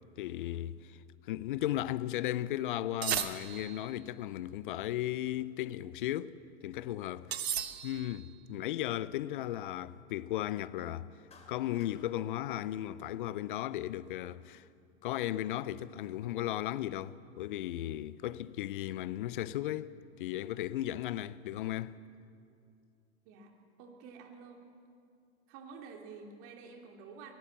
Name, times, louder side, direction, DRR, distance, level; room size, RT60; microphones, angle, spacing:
voice 1, 0.2-1.0 1.3-6.3 6.6-7.5 7.8-11.1 11.5-14.6 15.0-22.0, left 13 dB, 50° left, 0.7 m, -36 dB
sound 1, 3.0-3.9 7.3-8.2, right 9 dB, 65° right, 1.3 m, -35 dB
Clapping, 11.3-12.0, left 4 dB, 20° left, 2.9 m, -58 dB
voice 2, 23.8-24.6 25.5-27.3, right 5 dB, 40° right, 2.9 m, -49 dB
23.0 x 18.5 x 7.7 m
figure-of-eight pair, 95°, 34 cm